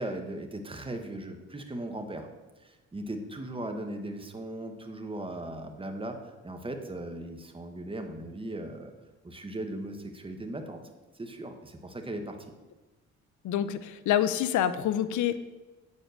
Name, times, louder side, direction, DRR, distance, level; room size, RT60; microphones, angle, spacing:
voice 1, 0.0-2.3 2.6-8.9 9.2-10.8 11.1-12.4, right 1 dB, 15° right, 5 dB, 1.3 m, -38 dB
voice 2, 13.4-15.4, left 10 dB, 75° left, 13 dB, 0.6 m, -27 dB
8.7 x 5.4 x 6.4 m, 1.2 s
cardioid pair, 90°, 30 cm